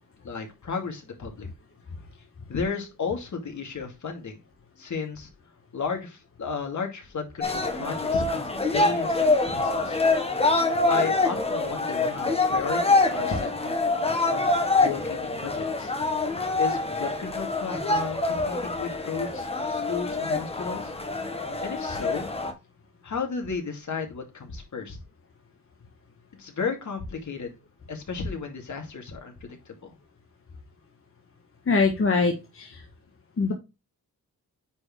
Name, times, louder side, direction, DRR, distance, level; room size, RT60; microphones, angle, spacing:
voice 1, 0.2-1.5 2.5-4.4 4.8-5.3 5.7-10.0 10.9-13.9 14.3-14.5 14.8-15.9 16.6-20.9 21.6-22.3 23.0-25.0 26.4-27.5 27.9-29.9, left 5 dB, 55° left, 3 dB, 2.3 m, -33 dB
sound 1, 7.4-22.5, left 3 dB, 15° left, 1.2 m, -25 dB
voice 2, 31.7-32.8 33.4-33.5, left 4 dB, 35° left, 2 dB, 1.3 m, -23 dB
9.6 x 4.4 x 3.2 m, 0.26 s
wide cardioid pair, 165°, 36 cm